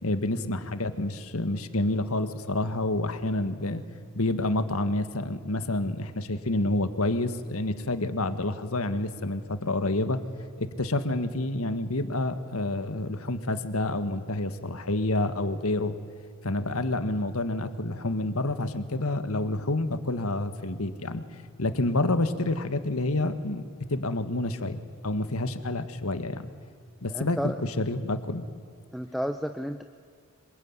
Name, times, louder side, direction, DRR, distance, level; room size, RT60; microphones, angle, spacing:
voice 1, 0.0-3.8 4.1-10.2 10.6-15.9 16.4-21.2 21.6-23.6 23.9-24.8 25.0-26.5 27.0-28.4, left 2 dB, 75° left, 10 dB, 1.7 m, -28 dB
voice 2, 27.1-27.6 28.9-29.8, equal, ahead, 7 dB, 0.6 m, -31 dB
25.5 x 23.0 x 9.8 m, 2.1 s
head